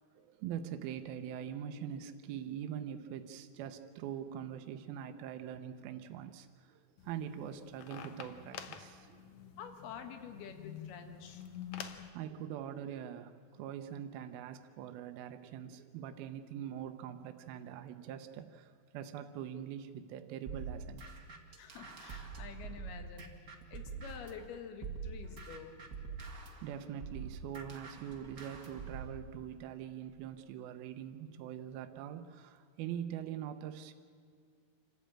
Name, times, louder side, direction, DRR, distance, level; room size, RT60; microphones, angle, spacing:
voice 1, 0.2-9.3 12.1-21.0 24.0-24.1 26.6-33.9, right 9 dB, 80° right, 8 dB, 2.6 m, -43 dB
sound 1, 7.0-12.1, left 8 dB, 65° left, 1.9 m, -48 dB
voice 2, 9.6-11.4 21.6-23.3 23.7-25.7, left 7 dB, 85° left, 6 dB, 3.6 m, -48 dB
sound 2, 20.5-24.4 24.8-29.2, right 5 dB, 35° right, 1.4 m, -45 dB
27.0 x 13.5 x 8.9 m, 2.1 s
omnidirectional pair, 4.3 m